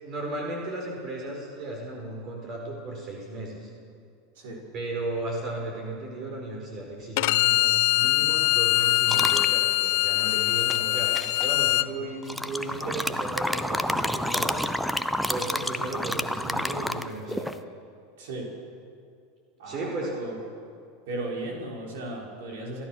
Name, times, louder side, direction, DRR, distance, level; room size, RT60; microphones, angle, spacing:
voice 1, 0.0-3.7 4.7-14.6 15.3-17.5 19.6-20.1, right 2 dB, 40° right, 0 dB, 5.0 m, -35 dB
Bowed string instrument, 7.2-11.9, left 19 dB, 60° left, 0.7 m, -23 dB
sound 1, 9.1-9.5 10.7-11.5 12.2-17.6, equal, ahead, 1.0 m, -29 dB
voice 2, 18.2-18.5 19.6-20.3 21.1-22.8, right 2 dB, 65° right, -2 dB, 6.2 m, -35 dB
27.5 x 15.0 x 6.5 m, 2.3 s
hypercardioid pair, 85°, 0 cm